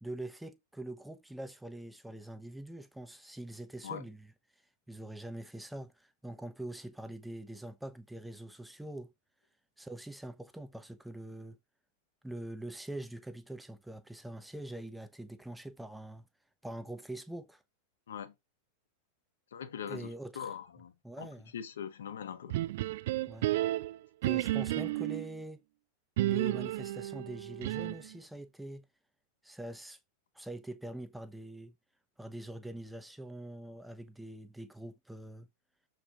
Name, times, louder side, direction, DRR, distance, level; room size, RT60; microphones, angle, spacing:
voice 1, 0.0-4.3 4.9-9.1 9.8-11.6 12.2-16.2 16.6-17.6 19.9-20.5 21.0-21.5 23.3-23.5 24.2-25.6 26.2-28.8 29.4-30.0 30.3-31.7 32.2-35.5, right 1 dB, 5° right, 0.8 m, -44 dB
voice 2, 19.5-21.3 21.5-22.5, left 8 dB, 65° left, 1.3 m, -42 dB
sound 1, 22.5-25.3 26.2-28.1, right 16 dB, 55° right, 0.4 m, -32 dB
7.2 x 4.7 x 4.1 m
figure-of-eight pair, 90°, 0 cm